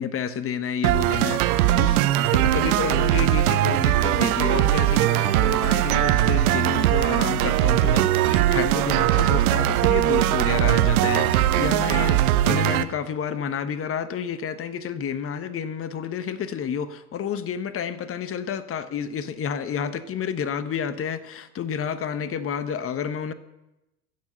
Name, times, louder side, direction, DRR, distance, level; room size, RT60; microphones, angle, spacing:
voice 1, 0.0-23.3, left 7 dB, 30° left, 1.1 m, -30 dB
sound 1, 0.8-12.8, right 13 dB, 70° right, 0.9 m, -20 dB
14.5 x 7.2 x 7.9 m
hypercardioid pair, 85°, 46 cm